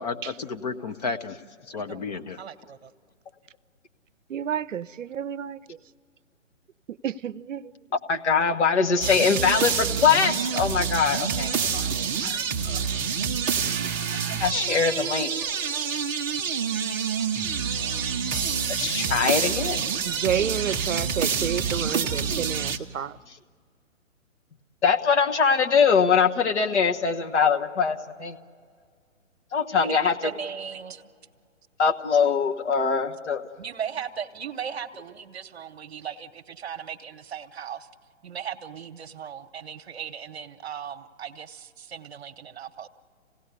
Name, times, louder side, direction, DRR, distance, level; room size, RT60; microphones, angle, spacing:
voice 1, 0.0-1.4 1.7-2.4, left 4 dB, 30° left, 0.7 m, -32 dB
voice 2, 2.4-2.9 29.8-31.1 33.6-37.9 38.2-42.9, right 8 dB, 50° right, 1.1 m, -37 dB
voice 3, 4.3-5.6 7.0-7.7 20.0-23.2, right 8 dB, 70° right, 0.6 m, -30 dB
voice 4, 8.1-12.0 12.2-12.4 14.2-15.3 18.7-19.8 24.8-28.4 29.5-30.3 31.8-33.4, left 6 dB, 60° left, 1.4 m, -23 dB
sound 1, 9.0-22.8, right 6 dB, 15° right, 0.6 m, -27 dB
26.5 x 17.0 x 8.1 m
figure-of-eight pair, 140°, 39 cm